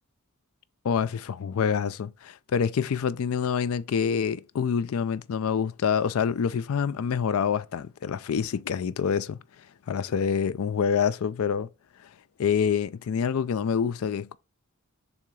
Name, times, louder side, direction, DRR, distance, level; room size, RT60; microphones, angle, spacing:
voice 1, 0.8-9.4 9.9-11.7 12.4-14.4, left 7 dB, 75° left, 0.4 m, -26 dB
7.0 x 2.8 x 4.7 m
head